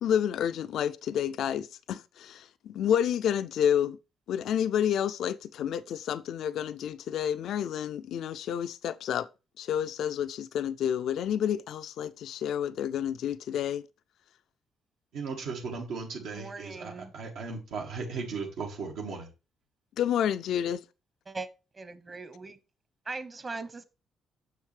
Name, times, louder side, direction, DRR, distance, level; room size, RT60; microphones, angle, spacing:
voice 1, 0.0-4.0 4.3-9.3 9.6-13.8 20.0-20.8, left 9 dB, 75° left, 0.3 m, -29 dB
voice 2, 15.1-19.3, right 4 dB, 90° right, 1.6 m, -36 dB
voice 3, 16.3-17.1 21.3-21.5 21.8-22.6 23.1-23.8, right 3 dB, 30° right, 0.9 m, -39 dB
6.5 x 6.3 x 3.3 m
cardioid pair, 90°, 0 cm